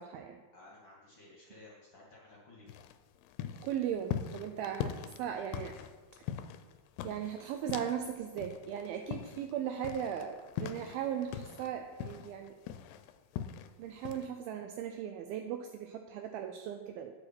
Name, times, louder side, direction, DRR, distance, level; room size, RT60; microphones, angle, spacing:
voice 1, 0.0-0.4 3.6-5.8 7.0-12.6 13.8-17.1, right 9 dB, 85° right, 6 dB, 2.2 m, -38 dB
voice 2, 0.5-2.7, left 2 dB, 45° left, -5 dB, 2.0 m, -55 dB
sound 1, 2.7-8.1 8.4-11.7 12.0-13.7 14.0-14.3, left 9 dB, 80° left, 2.5 m, -41 dB
9.7 x 8.8 x 4.5 m, 1.4 s
omnidirectional pair, 4.8 m